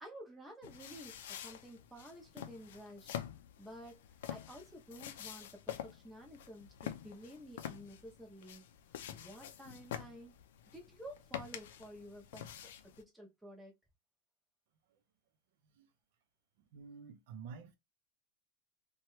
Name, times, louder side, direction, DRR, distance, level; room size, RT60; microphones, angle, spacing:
voice 1, 0.0-3.1 3.6-4.0 4.3-8.6 9.1-10.3 10.7-13.7, equal, 5° right, 0.6 m, -52 dB
sound 1, 0.6-13.0, left 10 dB, 85° left, 0.4 m, -47 dB
voice 2, 16.6-17.8, right 6 dB, 60° right, 0.5 m, -50 dB
2.8 x 2.2 x 3.0 m
supercardioid pair, 175°, 0 cm